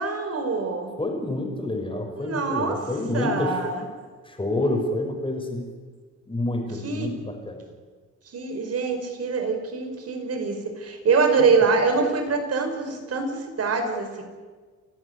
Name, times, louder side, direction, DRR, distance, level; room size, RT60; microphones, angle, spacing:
voice 1, 0.0-0.9 2.2-2.8 3.1-3.8 6.8-7.1 8.3-14.2, right 4 dB, 55° right, 6 dB, 5.3 m, -24 dB
voice 2, 1.0-3.6 4.2-5.6 6.3-7.6 11.4-11.6, left 2 dB, 15° left, 3 dB, 5.9 m, -28 dB
28.5 x 12.5 x 10.0 m, 1.4 s
cardioid pair, 90°, 30 cm